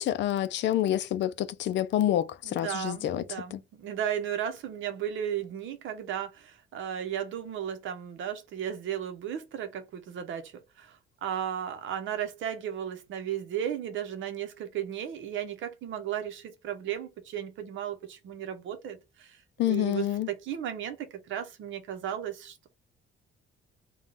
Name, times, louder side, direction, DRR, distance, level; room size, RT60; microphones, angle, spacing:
voice 1, 0.0-3.2 3.5-3.6 19.6-20.3, left 12 dB, 60° left, 0.5 m, -27 dB
voice 2, 2.4-19.4 19.7-22.7, right 9 dB, 70° right, 1.0 m, -35 dB
3.7 x 2.3 x 3.8 m
cardioid pair, 170°, 21 cm